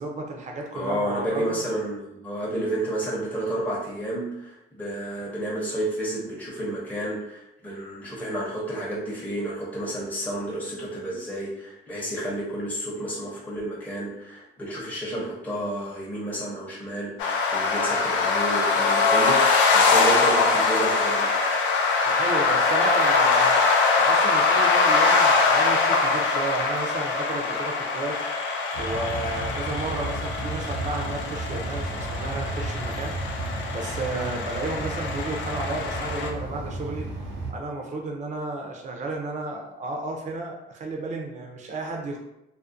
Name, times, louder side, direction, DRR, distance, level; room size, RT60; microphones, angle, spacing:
voice 1, 0.0-1.6 22.0-23.6 24.0-28.2 28.8-33.2 33.7-37.1 37.5-42.2, right 2 dB, 35° right, 1 dB, 0.5 m, -32 dB
voice 2, 0.7-21.3, right 1 dB, 10° left, -6 dB, 0.7 m, -31 dB
sound 1, 17.2-36.3, left 4 dB, 75° left, 0.4 m, -23 dB
sound 2, 28.7-37.5, right 2 dB, 80° right, 0.7 m, -33 dB
2.4 x 2.1 x 2.5 m, 0.86 s
cardioid pair, 90°, 20 cm